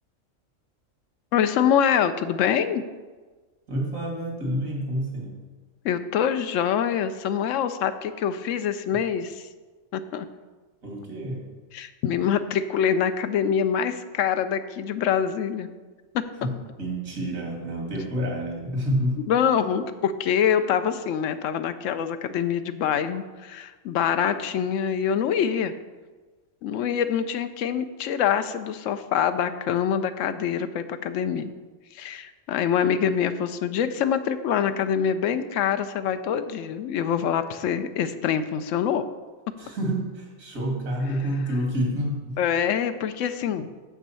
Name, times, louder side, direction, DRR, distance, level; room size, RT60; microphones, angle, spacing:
voice 1, 1.3-2.8 5.8-9.4 9.9-10.3 11.7-15.7 16.1-16.2 19.3-25.7 26.6-31.5 31.9-39.0 42.4-43.7, left 8 dB, 75° left, 10 dB, 0.9 m, -25 dB
voice 2, 3.7-5.4 10.8-11.4 16.4-19.3 39.6-42.4, equal, 80° right, -1 dB, 2.3 m, -28 dB
7.0 x 6.1 x 5.6 m, 1.3 s
omnidirectional pair, 1.4 m